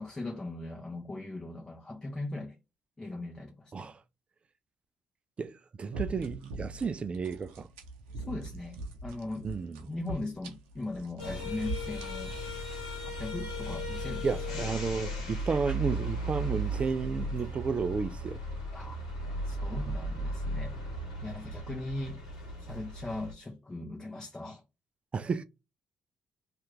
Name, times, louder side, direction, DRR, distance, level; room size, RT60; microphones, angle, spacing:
voice 1, 0.0-2.6 3.0-3.9 8.1-9.5 9.9-12.3 13.0-14.4 18.7-19.0 19.4-20.8 21.2-22.2 22.6-24.6, left 2 dB, 20° left, 1.0 m, -39 dB
voice 2, 5.4-7.7 9.4-9.8 14.2-18.4 25.1-25.4, right 5 dB, 40° right, 0.4 m, -32 dB
sound 1, 5.9-14.0, right 2 dB, 85° right, 0.7 m, -43 dB
sound 2, 11.2-23.3, right 1 dB, 85° left, 1.0 m, -36 dB
2.8 x 2.5 x 3.4 m
hypercardioid pair, 45°, 3 cm